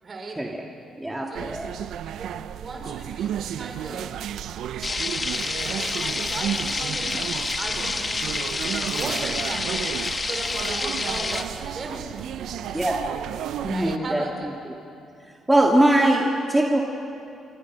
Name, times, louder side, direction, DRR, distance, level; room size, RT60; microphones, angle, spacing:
voice 1, 0.0-0.4 1.3-1.5 2.1-4.2 5.4-7.3 7.6-8.3 8.9-9.9 10.3-13.2 13.7-14.6, right 3 dB, 40° right, 3 dB, 4.3 m, -37 dB
voice 2, 1.0-1.7 12.7-13.0 13.6-14.5 15.5-16.8, right 1 dB, 10° right, -1 dB, 2.3 m, -21 dB
sound 1, 1.3-14.0, right 10 dB, 75° right, 0.7 m, -33 dB
sound 2, 4.8-11.4, left 3 dB, 30° left, 1.4 m, -28 dB
27.5 x 24.5 x 6.3 m, 2.6 s
cardioid pair, 90°, 0 cm